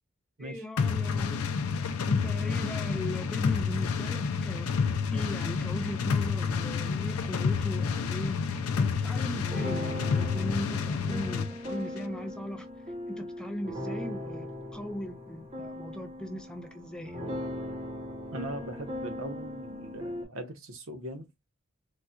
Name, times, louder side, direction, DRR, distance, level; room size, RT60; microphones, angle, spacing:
voice 1, 0.4-1.4 2.1-12.7 13.2-17.2, equal, 5° left, 0.4 m, -38 dB
sound 1, 0.8-11.5, left 5 dB, 80° left, 0.4 m, -29 dB
sound 2, 9.4-20.2, left 1 dB, 30° right, 0.9 m, -39 dB
voice 2, 18.3-21.3, right 1 dB, 65° right, 0.9 m, -40 dB
4.0 x 2.3 x 2.3 m
head